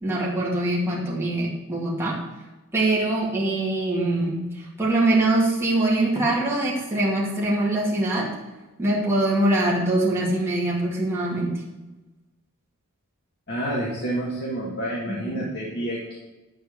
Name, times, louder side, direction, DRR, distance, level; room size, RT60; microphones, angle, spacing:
voice 1, 0.0-2.2 2.7-8.3 8.8-11.6 15.1-15.5, right 2 dB, 10° right, -5 dB, 2.3 m, -23 dB
voice 2, 13.5-16.2, right 1 dB, 50° left, -4 dB, 1.7 m, -29 dB
10.5 x 4.5 x 8.0 m, 1.1 s
head